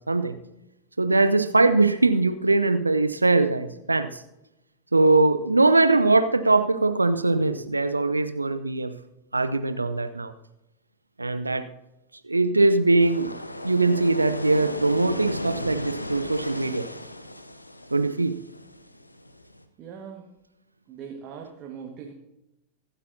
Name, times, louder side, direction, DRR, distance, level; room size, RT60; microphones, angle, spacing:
voice 1, 1.0-4.2 4.9-8.9 9.3-10.3 11.2-11.6 12.3-13.3 13.6-16.9 17.9-18.3, right 3 dB, 80° right, 10 dB, 0.6 m, -21 dB
sound 1, 13.0-19.6, left 1 dB, 85° left, 0.7 m, -35 dB
voice 2, 19.8-20.3 20.9-22.1, right 7 dB, 35° right, 2 dB, 1.7 m, -40 dB
24.5 x 8.4 x 2.7 m, 0.91 s
figure-of-eight pair, 90°, 0 cm